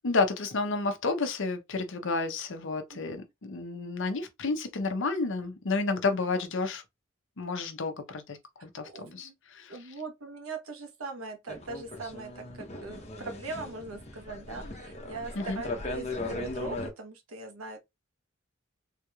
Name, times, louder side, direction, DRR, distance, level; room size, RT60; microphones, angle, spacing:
voice 1, 0.0-6.8 7.4-9.9 15.3-15.6, left 3 dB, 65° left, 0.8 m, -31 dB
voice 2, 8.8-9.3 9.7-17.8, right 3 dB, 85° right, 1.1 m, -41 dB
sound 1, 11.5-16.9, left 2 dB, 30° left, 0.9 m, -38 dB
3.7 x 3.0 x 2.3 m
head